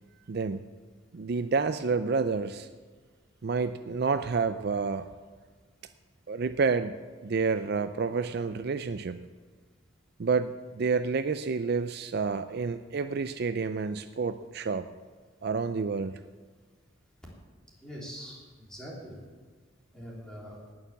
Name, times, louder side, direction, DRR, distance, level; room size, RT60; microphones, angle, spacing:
voice 1, 0.3-0.6 1.1-2.7 3.4-5.1 6.3-9.2 10.2-14.9 15.4-16.2, right 4 dB, 55° right, 11 dB, 0.4 m, -29 dB
voice 2, 17.8-19.2 19.9-20.6, equal, 5° left, -4 dB, 3.5 m, -43 dB
18.5 x 6.9 x 7.2 m, 1.4 s
head